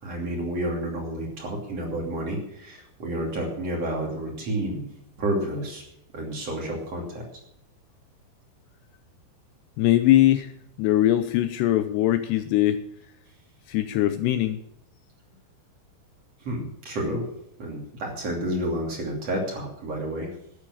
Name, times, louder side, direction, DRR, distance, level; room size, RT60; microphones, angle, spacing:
voice 1, 0.0-4.9 5.2-5.8 6.1-7.2 16.4-17.2 17.6-20.3, right 1 dB, 40° right, -1 dB, 3.4 m, -30 dB
voice 2, 9.8-10.5 10.8-12.8 13.7-14.6, left 13 dB, 80° left, 10 dB, 2.6 m, -21 dB
12.5 x 10.0 x 6.4 m, 0.75 s
omnidirectional pair, 5.3 m